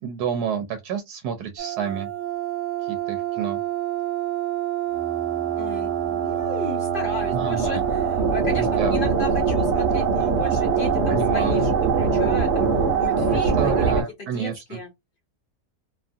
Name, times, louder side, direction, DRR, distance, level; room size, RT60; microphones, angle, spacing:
voice 1, 0.0-2.1 2.8-3.6 7.3-7.8 8.6-9.0 11.1-11.7 13.6-14.8, right 7 dB, 90° right, 1.1 m, -29 dB
sound 1, 1.6-14.0, right 6 dB, 55° right, 1.0 m, -23 dB
voice 2, 5.6-12.7 13.0-13.9 14.2-14.9, left 3 dB, 55° left, 0.6 m, -35 dB
2.7 x 2.4 x 2.5 m
omnidirectional pair, 1.6 m